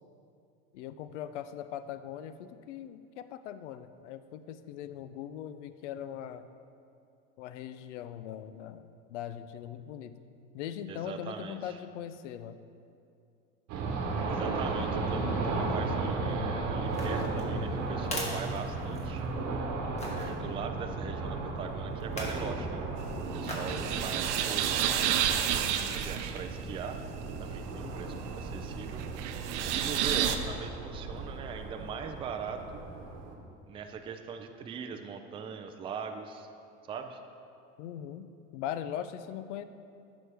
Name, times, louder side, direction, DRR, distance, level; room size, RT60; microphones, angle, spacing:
voice 1, 0.7-6.5 7.4-8.8 9.1-10.2 10.5-12.6 19.9-20.3 27.8-28.2 37.8-38.3 38.5-39.6, left 10 dB, 90° left, 12 dB, 0.5 m, -40 dB
voice 2, 10.9-11.8 14.3-19.3 20.1-22.8 23.3-24.8 25.8-27.0 27.4-29.1 29.7-32.8 33.7-36.5 36.8-37.2, right 6 dB, 15° right, 6 dB, 0.3 m, -41 dB
sound 1, 13.7-33.3, right 3 dB, 50° right, 1.1 m, -35 dB
sound 2, 16.9-19.3 20.0-20.3 22.0-22.5 23.4-23.8 24.3-24.4, left 1 dB, 20° left, 1.3 m, -40 dB
sound 3, 23.0-30.4, right 9 dB, 85° right, 0.6 m, -32 dB
9.4 x 6.2 x 3.4 m, 2.5 s
supercardioid pair, 110°, 34 cm